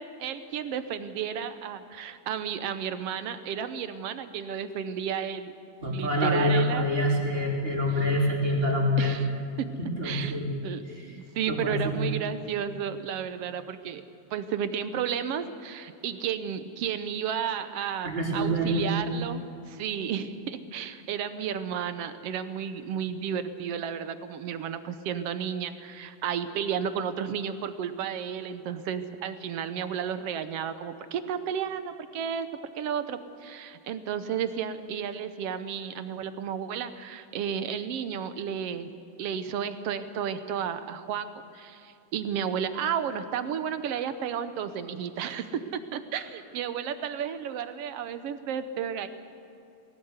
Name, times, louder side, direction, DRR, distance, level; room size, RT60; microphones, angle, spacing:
voice 1, 0.0-5.5 5.9-6.9 7.9-8.1 9.0-9.3 9.6-9.7 10.0-10.4 10.6-10.8 11.1-14.0 14.3-32.5 32.8-38.9 39.2-41.3 41.5-49.1, right 8 dB, 70° right, 11 dB, 1.6 m, -32 dB
voice 2, 5.8-9.1 9.8-10.5 11.5-12.0 18.0-18.9, equal, 20° right, -1 dB, 3.1 m, -26 dB
20.0 x 17.5 x 8.0 m, 2.8 s
omnidirectional pair, 3.5 m